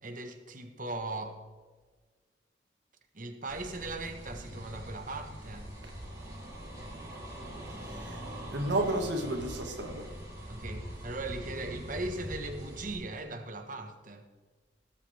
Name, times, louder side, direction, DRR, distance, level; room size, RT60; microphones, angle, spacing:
voice 1, 0.0-1.4 3.1-5.7 10.5-14.2, right 2 dB, 45° right, 5 dB, 1.4 m, -39 dB
sound 1, 3.5-13.0, equal, 20° right, 3.5 m, -43 dB
voice 2, 7.9-10.1, right 1 dB, 80° right, 3 dB, 2.1 m, -32 dB
19.0 x 8.5 x 3.5 m, 1.4 s
head